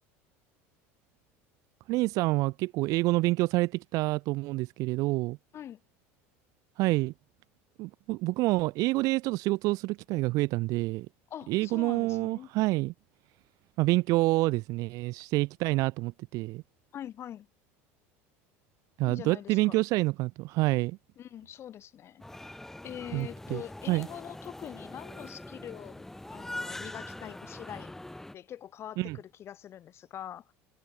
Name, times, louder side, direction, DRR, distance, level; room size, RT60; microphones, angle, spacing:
voice 1, 1.9-5.4 6.8-7.1 7.8-11.1 11.5-12.9 13.8-16.6 19.0-21.0 23.1-23.6 23.9-24.1 29.0-29.2, right 21 dB, 55° right, 0.4 m, -27 dB
voice 2, 11.3-12.5 16.9-17.5 19.0-19.8 21.2-22.3 22.8-26.1 26.3-28.0 28.3-30.5, left 10 dB, 40° left, 2.5 m, -44 dB
sound 1, 22.2-28.3, left 1 dB, 5° left, 1.3 m, -43 dB
supercardioid pair, 125°, 7 cm